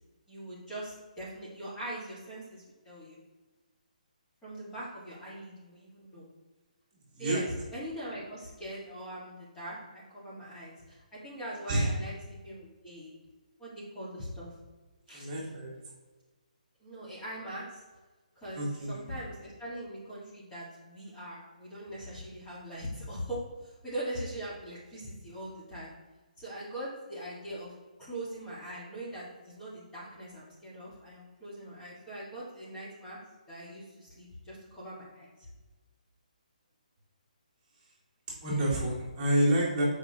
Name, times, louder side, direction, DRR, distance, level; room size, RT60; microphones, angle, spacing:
voice 1, 0.3-3.2 4.4-6.3 7.2-12.1 12.4-13.1 13.6-14.5 15.1-15.3 16.8-17.8 18.3-25.9 26.4-27.7 28.0-33.2 33.5-35.5, right 1 dB, 15° left, -8 dB, 1.8 m, -41 dB
voice 2, 15.1-15.7 18.6-19.0 38.4-39.8, right 1 dB, 20° right, -7 dB, 2.0 m, -28 dB
6.8 x 5.0 x 2.9 m, 1.2 s
hypercardioid pair, 150°, 4 cm